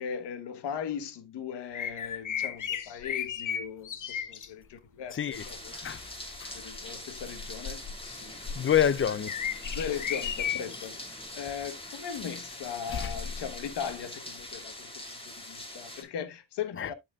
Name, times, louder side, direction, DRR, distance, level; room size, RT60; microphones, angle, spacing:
voice 1, 0.0-5.8 6.5-7.8 8.2-8.4 9.7-16.9, left 8 dB, 90° left, 1.3 m, -38 dB
sound 1, 1.7-4.5 5.3-5.7 6.3-11.0 11.5-11.6 13.4-13.5, left 8 dB, 50° left, 1.0 m, -35 dB
voice 2, 5.1-5.5 5.7-6.1 6.4-6.5 8.6-9.3 12.9-13.1 16.8-16.9, left 9 dB, 30° left, 0.6 m, -27 dB
sound 2, 5.3-16.0, left 1 dB, 15° left, 2.4 m, -43 dB
12.5 x 4.5 x 2.4 m
cardioid pair, 75°, 40 cm